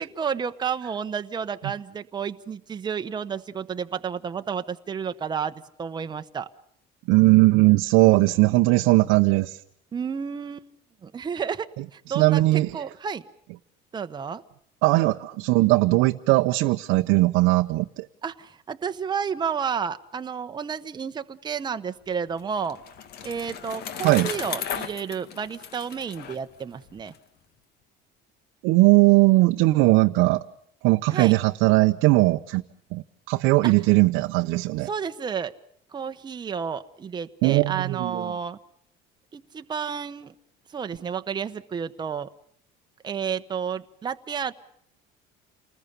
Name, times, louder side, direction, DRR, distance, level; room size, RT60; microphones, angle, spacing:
voice 1, 0.0-6.5 9.9-10.7 11.0-13.2 13.9-14.4 18.2-22.8 23.2-27.1 31.1-31.4 33.6-33.7 34.9-35.5 35.9-38.6 39.3-40.3 40.7-42.3 43.0-44.5, right 7 dB, 20° right, 1.0 m, -31 dB
voice 2, 7.1-9.6 12.1-12.9 14.8-18.1 24.0-24.3 28.6-30.4 30.8-32.6 32.9-34.9 37.4-38.3, right 21 dB, 85° right, 0.9 m, -19 dB
Bicycle, 22.1-27.2, left 8 dB, 55° left, 1.9 m, -36 dB
28.5 x 20.0 x 6.8 m
cardioid pair, 155°, 20 cm